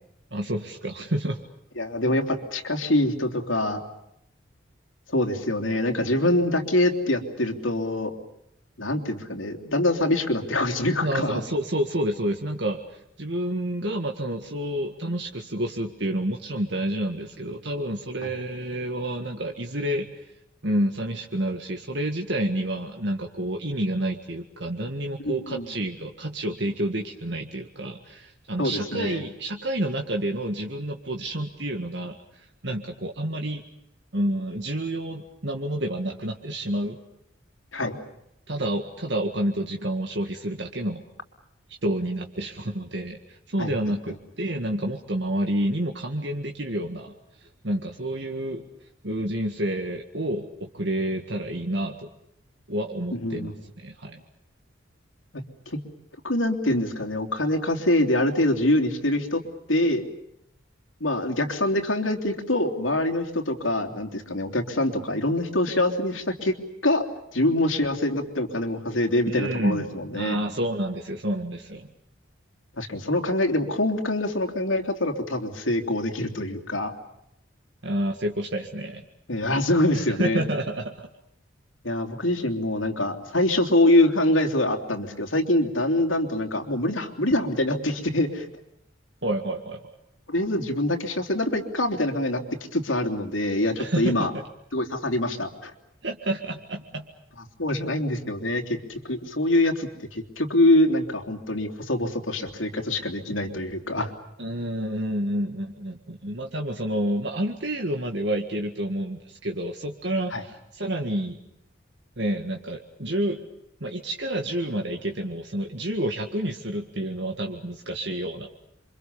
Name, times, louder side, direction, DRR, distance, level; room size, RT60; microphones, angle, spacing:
voice 1, 0.3-1.4 11.0-20.2 20.6-33.6 34.1-37.0 38.5-41.0 41.8-47.1 47.6-48.7 49.0-52.1 52.7-53.5 53.8-54.2 69.3-69.9 70.1-71.9 77.8-79.1 79.9-80.9 89.2-90.0 93.8-94.3 96.0-97.1 104.4-111.4 112.2-113.5 113.8-118.5, right 1 dB, 60° right, 3 dB, 1.9 m, -29 dB
voice 2, 1.8-3.8 5.1-8.2 8.8-11.4 25.2-25.6 28.6-29.2 37.7-38.0 43.6-43.7 53.1-53.5 55.3-55.8 56.2-59.4 59.7-60.0 61.0-66.6 66.8-67.0 67.3-70.4 72.8-76.9 79.3-80.4 81.8-88.4 90.3-92.4 92.7-94.3 94.7-95.7 97.6-104.1 110.3-110.4, left 1 dB, 80° left, 5 dB, 3.3 m, -24 dB
28.5 x 25.0 x 7.0 m, 0.79 s
head